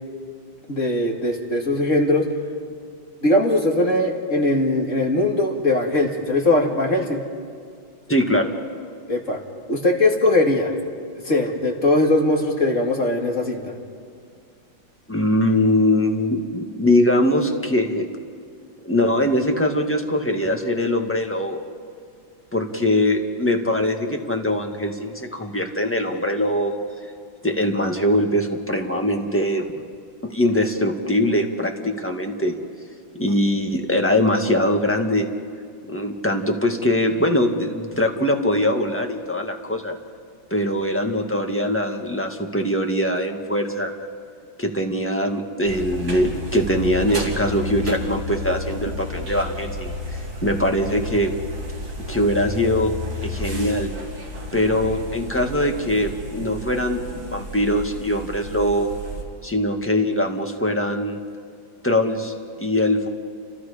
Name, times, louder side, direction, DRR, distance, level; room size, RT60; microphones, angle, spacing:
voice 1, 0.7-2.3 3.2-7.2 9.1-9.4 9.7-10.7 11.2-13.7, left 2 dB, 40° left, 1 dB, 2.6 m, -20 dB
voice 2, 8.1-8.5 15.1-18.1 18.8-21.6 22.5-26.7 27.4-29.7 30.2-32.6 33.1-35.3 35.9-39.9 40.5-43.9 44.6-51.3 52.1-52.9 53.2-53.9 54.5-58.9 59.4-61.2 61.8-63.1, left 1 dB, 5° left, 2 dB, 1.5 m, -22 dB
sound 1, 45.6-59.2, left 1 dB, 75° right, 4.7 m, -32 dB
29.5 x 27.0 x 5.1 m, 2.2 s
omnidirectional pair, 2.1 m